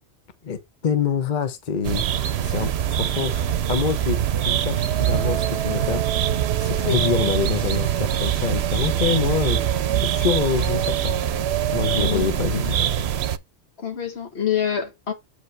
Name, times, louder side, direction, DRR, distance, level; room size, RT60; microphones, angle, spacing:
voice 1, 0.4-2.7 3.0-6.0 6.6-11.1 11.7-13.0, left 6 dB, 45° left, 0.9 m, -26 dB
sound 1, 1.8-13.4, right 10 dB, 70° right, 0.9 m, -23 dB
voice 2, 11.9-12.7 13.8-15.1, left 8 dB, 65° left, 1.6 m, -27 dB
8.0 x 5.1 x 3.3 m
omnidirectional pair, 1.2 m